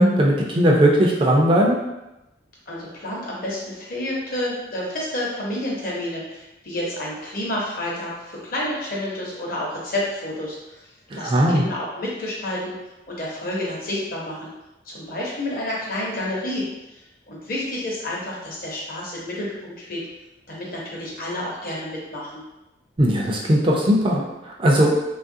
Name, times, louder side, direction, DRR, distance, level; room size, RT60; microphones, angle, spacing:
voice 1, 0.0-1.8 11.1-11.6 23.0-25.0, equal, 25° right, -1 dB, 0.4 m, -18 dB
voice 2, 2.7-10.8 11.1-12.8 13.1-14.5 14.9-16.6 16.9-20.0 20.5-22.4, left 1 dB, 50° left, -4 dB, 0.8 m, -29 dB
3.0 x 2.4 x 2.6 m, 0.95 s
head